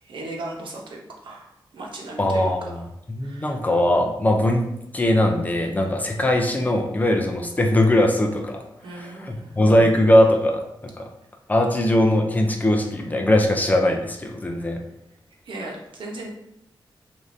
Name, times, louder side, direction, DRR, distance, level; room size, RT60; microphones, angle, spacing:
voice 1, 0.0-2.5 3.2-3.6 8.8-9.6 15.4-16.3, right 2 dB, 75° right, -1 dB, 0.9 m, -37 dB
voice 2, 2.2-2.8 3.1-4.7 4.9-8.6 8.9-11.0 11.5-14.8, left 1 dB, 20° left, 2 dB, 0.5 m, -20 dB
6.4 x 2.6 x 2.6 m, 0.80 s
wide cardioid pair, 160°, 9 cm